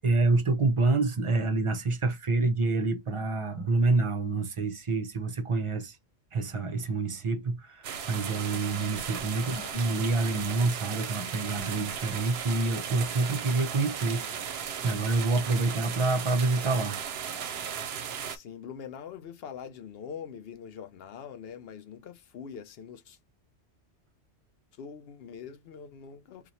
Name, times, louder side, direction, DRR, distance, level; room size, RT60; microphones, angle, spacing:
voice 1, 0.0-6.0 6.3-14.2 14.8-17.0, right 3 dB, 40° right, 0.5 m, -27 dB
sound 1, 7.8-18.4, right 7 dB, 70° right, 0.8 m, -36 dB
voice 2, 9.3-9.8 13.7-14.4 18.2-23.2 24.7-26.5, left 7 dB, 65° left, 0.8 m, -44 dB
2.9 x 2.4 x 4.0 m
omnidirectional pair, 1.2 m